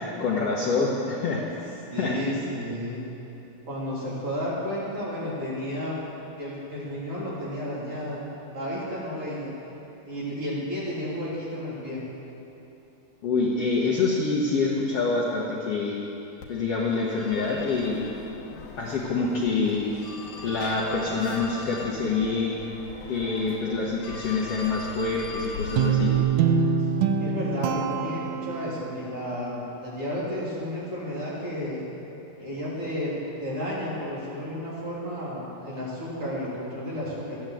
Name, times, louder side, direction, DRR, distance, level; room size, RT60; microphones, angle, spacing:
voice 1, 0.0-2.1 13.2-16.0 16.5-18.1 18.8-19.9 20.4-22.6 23.1-26.1, left 4 dB, 55° left, -5 dB, 1.8 m, -26 dB
voice 2, 1.9-3.0 3.7-6.0 6.4-8.2 8.5-9.6 10.0-12.0 27.2-31.8 32.4-37.4, equal, 40° right, -7 dB, 3.8 m, -32 dB
Telephone, 16.4-26.2, left 4 dB, 80° left, 3.0 m, -39 dB
Guitar, 25.8-29.0, right 7 dB, 75° right, 1.9 m, -24 dB
13.5 x 10.5 x 7.7 m, 3.0 s
omnidirectional pair, 4.0 m